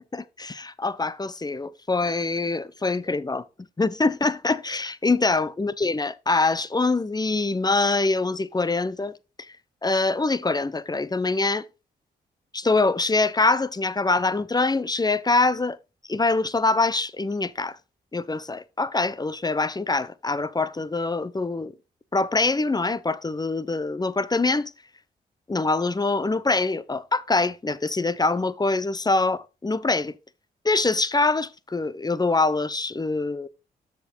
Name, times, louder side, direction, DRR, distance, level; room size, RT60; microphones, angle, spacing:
voice 1, 0.1-3.4 3.8-9.1 9.4-9.5 9.8-11.6 12.5-15.8 16.1-17.8 18.1-21.7 22.1-24.7 25.5-30.1 30.6-33.5, left 3 dB, 20° left, 0.8 m, -24 dB
6.6 x 6.0 x 4.3 m
supercardioid pair, 50°, 19 cm